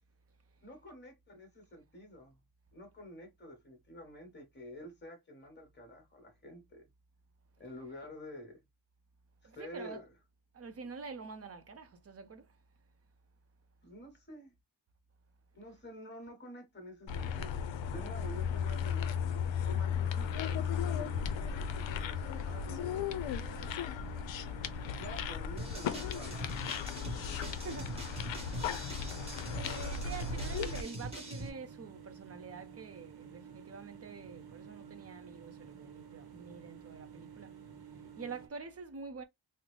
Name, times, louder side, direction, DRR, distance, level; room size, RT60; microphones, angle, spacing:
voice 1, 0.6-2.4 2.7-6.8 7.6-8.6 9.4-10.1 13.8-14.5 15.5-19.2 19.6-23.8 24.9-26.7, equal, 25° left, 1.2 m, -49 dB
voice 2, 9.4-10.0 10.5-12.6 27.4-28.1 28.5-29.0 29.5-39.2, right 4 dB, 35° right, 0.5 m, -47 dB
sound 1, 17.1-30.8, left 7 dB, 75° left, 0.5 m, -36 dB
sound 2, 20.2-38.5, right 7 dB, 55° right, 0.9 m, -52 dB
sound 3, 25.6-31.5, right 1 dB, 15° right, 1.1 m, -43 dB
3.8 x 2.0 x 3.1 m
wide cardioid pair, 170°, 46 cm